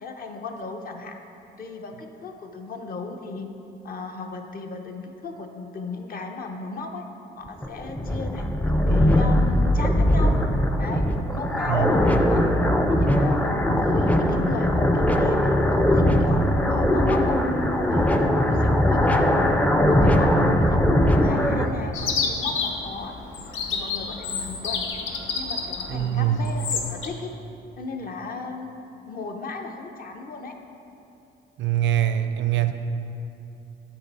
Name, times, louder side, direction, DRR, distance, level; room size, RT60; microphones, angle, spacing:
voice 1, 0.0-1.2 1.6-3.5 3.8-7.0 7.4-10.3 10.8-11.1 11.3-12.4 12.9-13.4 13.7-17.4 17.7-19.6 19.9-23.2 23.7-24.9 25.3-27.3 27.8-28.8 29.1-30.6, left 3 dB, 45° left, 4 dB, 0.7 m, -36 dB
sound 1, 7.5-21.7, left 1 dB, 5° left, 0.4 m, -20 dB
voice 2, 11.6-12.0 25.9-26.5 31.6-32.7, right 11 dB, 70° right, 9 dB, 0.5 m, -23 dB
Chirp tweet, 21.9-27.1, left 5 dB, 80° left, 0.8 m, -29 dB
7.4 x 5.7 x 4.2 m, 2.8 s
cardioid pair, 90°, 20 cm